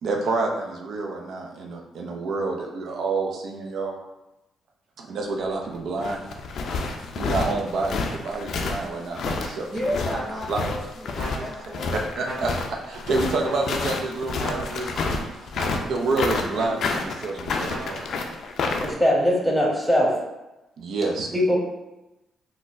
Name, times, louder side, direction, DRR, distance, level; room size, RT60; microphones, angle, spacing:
voice 1, 0.0-3.9 5.0-6.2 7.2-9.7 10.5-10.6 12.1-15.2 15.8-18.1 20.8-21.3, right 3 dB, 70° right, 1 dB, 0.4 m, -28 dB
sound 1, 5.7-18.9, left 4 dB, 65° left, 0.3 m, -29 dB
voice 2, 9.7-12.0, equal, 10° right, -4 dB, 0.5 m, -32 dB
sound 2, 10.1-10.7 11.1-11.8 12.2-12.9 13.4-14.0 14.4-15.0 15.5-16.1 16.5-17.2 17.6-18.3, right 2 dB, 90° right, 0.9 m, -38 dB
voice 3, 18.8-20.1 21.3-21.6, equal, 5° left, -2 dB, 1.0 m, -21 dB
3.9 x 2.1 x 2.5 m, 0.99 s
supercardioid pair, 60°, 0 cm